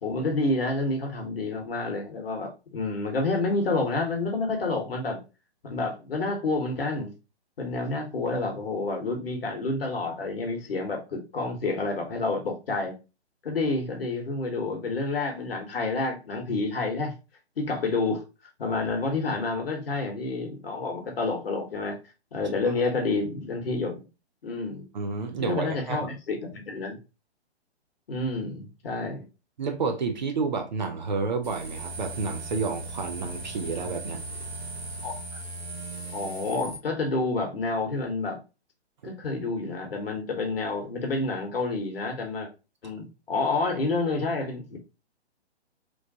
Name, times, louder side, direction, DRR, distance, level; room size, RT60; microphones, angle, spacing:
voice 1, 0.0-5.2 5.6-7.1 7.6-12.9 13.4-17.1 17.6-18.2 18.6-22.0 22.3-24.0 24.4-24.9 25.4-27.0 28.1-29.3 35.0-35.2 36.1-38.4 39.0-42.5 42.8-44.8, left 3 dB, 55° left, 1.0 m, -29 dB
voice 2, 24.9-26.1 29.6-34.2 39.0-39.1, right 4 dB, 45° right, 0.5 m, -30 dB
sound 1, 31.4-36.8, right 2 dB, 65° right, 1.1 m, -37 dB
3.1 x 2.1 x 2.6 m
figure-of-eight pair, 130°, 34 cm